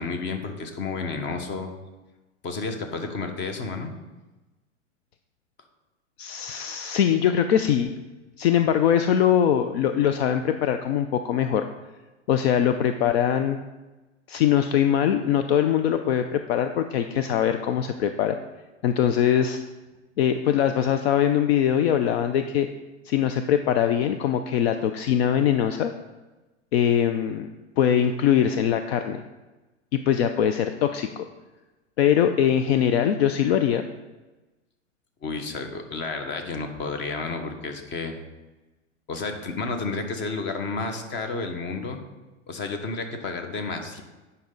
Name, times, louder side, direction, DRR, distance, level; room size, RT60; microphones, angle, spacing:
voice 1, 0.0-1.7 2.4-3.9 35.2-38.2 39.1-42.0 42.5-44.0, left 4 dB, 30° left, 6 dB, 1.2 m, -31 dB
voice 2, 6.2-7.9 8.4-11.7 12.3-13.6 14.3-18.4 18.8-19.6 20.2-22.7 23.0-25.9 26.7-27.5 27.8-29.2 29.9-31.2 32.0-33.8, left 9 dB, 60° left, 8 dB, 0.6 m, -22 dB
9.2 x 5.5 x 3.9 m, 1.1 s
hypercardioid pair, 110°, 36 cm